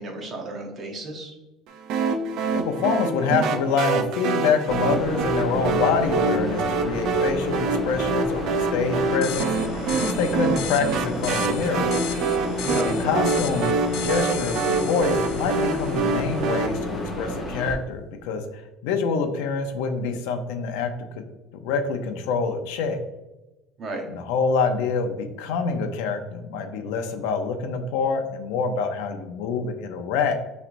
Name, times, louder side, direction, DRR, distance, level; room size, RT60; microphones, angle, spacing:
voice 1, 0.0-1.3 9.9-10.1 12.6-12.9 23.8-24.0, right 2 dB, 25° right, 1 dB, 0.9 m, -32 dB
sound 1, 1.9-16.7, right 4 dB, 55° right, 0.5 m, -26 dB
voice 2, 2.5-8.4 8.7-12.0 12.8-21.2 21.6-23.0 24.1-30.4, left 5 dB, 85° left, 6 dB, 0.6 m, -26 dB
sound 2, 4.7-17.7, equal, 15° left, 0.8 m, -31 dB
sound 3, 9.2-16.4, left 10 dB, 45° left, 0.4 m, -37 dB
5.8 x 3.2 x 2.6 m, 1.0 s
cardioid pair, 175°, 0 cm